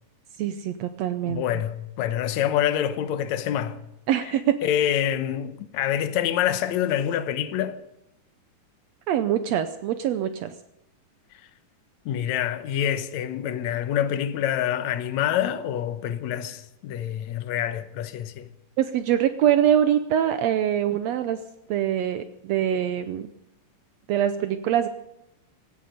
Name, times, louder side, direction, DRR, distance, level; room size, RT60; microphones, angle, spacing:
voice 1, 0.4-1.4 4.1-4.5 9.1-10.5 18.8-21.4 21.7-23.3 24.1-24.9, right 10 dB, 85° right, 1.5 m, -24 dB
voice 2, 1.3-3.8 4.2-4.3 4.6-7.8 11.3-11.4 12.1-18.5, left 10 dB, 70° left, 2.0 m, -26 dB
17.0 x 15.0 x 5.2 m
omnidirectional pair, 4.0 m